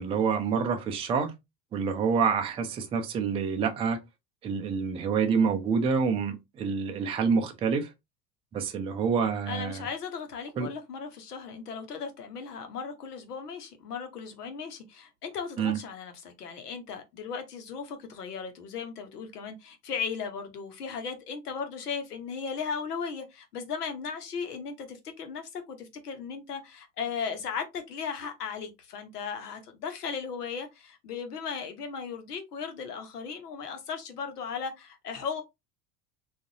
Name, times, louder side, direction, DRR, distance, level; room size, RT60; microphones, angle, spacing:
voice 1, 0.0-1.3 1.7-4.0 4.4-7.9 8.5-9.8 10.6-10.7 15.6-15.8, right 5 dB, 15° right, 0.4 m, -27 dB
voice 2, 9.5-35.4, left 6 dB, 75° left, 1.0 m, -36 dB
3.7 x 2.5 x 2.8 m
figure-of-eight pair, 75°, 47 cm